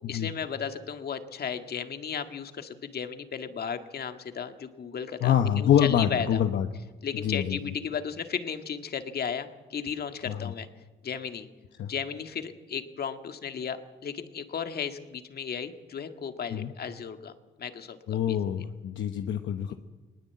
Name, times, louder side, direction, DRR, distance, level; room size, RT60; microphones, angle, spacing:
voice 1, 0.1-6.4 7.0-10.7 11.0-11.5 11.9-17.3 17.6-18.6 19.7-19.8, left 7 dB, 50° left, 7 dB, 1.9 m, -35 dB
voice 2, 5.2-6.7 7.2-7.6 10.3-10.4 11.8-11.9 16.5-16.7 18.1-19.7, left 9 dB, 70° left, 6 dB, 1.1 m, -25 dB
20.0 x 20.0 x 8.4 m, 1.2 s
cardioid pair, 90°, 20 cm